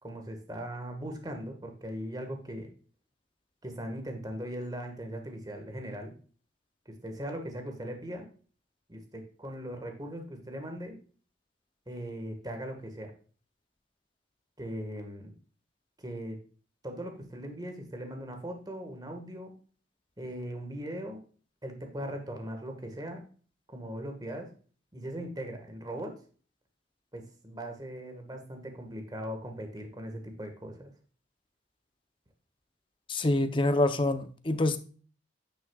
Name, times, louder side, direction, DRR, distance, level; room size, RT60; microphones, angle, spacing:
voice 1, 0.0-2.7 3.6-6.1 6.8-8.3 8.9-11.0 11.9-13.1 14.6-15.3 16.0-16.4 16.8-19.6 20.2-21.2 21.6-23.2 23.7-24.5 24.9-26.1 27.1-30.9, equal, 20° right, 1.5 m, -39 dB
voice 2, 33.1-34.8, left 2 dB, 25° left, 0.7 m, -26 dB
9.8 x 6.2 x 2.3 m
head